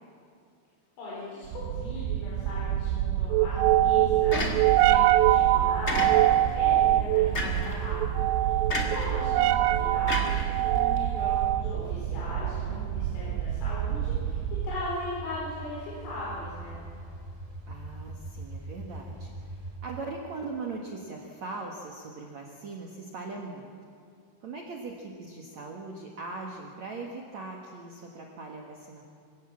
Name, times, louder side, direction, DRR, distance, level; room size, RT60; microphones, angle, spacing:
voice 1, 1.0-14.4 14.6-16.8, left 1 dB, 90° left, -7 dB, 7.2 m, -38 dB
sound 1, 1.5-14.9, right 13 dB, 80° right, 2.6 m, -25 dB
sound 2, 4.3-5.0 5.9-6.5 7.3-7.8 8.7-9.1 10.1-11.0, left 2 dB, 55° left, 0.7 m, -32 dB
sound 3, 11.6-19.8, right 1 dB, 25° right, 2.0 m, -42 dB
voice 2, 17.7-23.7 24.4-29.0, right 3 dB, 60° right, 0 dB, 1.9 m, -40 dB
27.5 x 16.5 x 7.4 m, 2.4 s
omnidirectional pair, 5.6 m